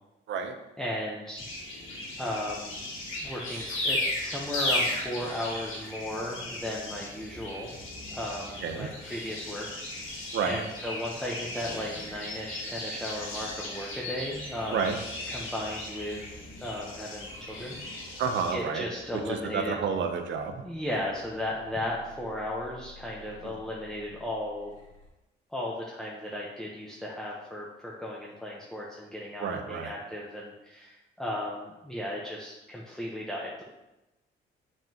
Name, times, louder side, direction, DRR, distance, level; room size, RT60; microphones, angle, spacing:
voice 1, 0.8-1.4 2.2-2.7 3.2-7.7 8.1-9.8 10.1-14.8 15.3-17.8 18.5-19.8 20.6-24.7 25.5-33.6, left 1 dB, ahead, -5 dB, 1.0 m, -35 dB
sound 1, 1.4-18.5, left 1 dB, 90° left, 2.4 m, -36 dB
sound 2, 7.3-25.1, left 1 dB, 35° left, 2.1 m, -54 dB
voice 2, 18.2-18.8 19.1-20.6 23.4-23.5 29.4-29.9, right 6 dB, 70° right, 6 dB, 0.9 m, -30 dB
6.9 x 6.1 x 3.0 m, 0.99 s
cardioid pair, 90°, 20 cm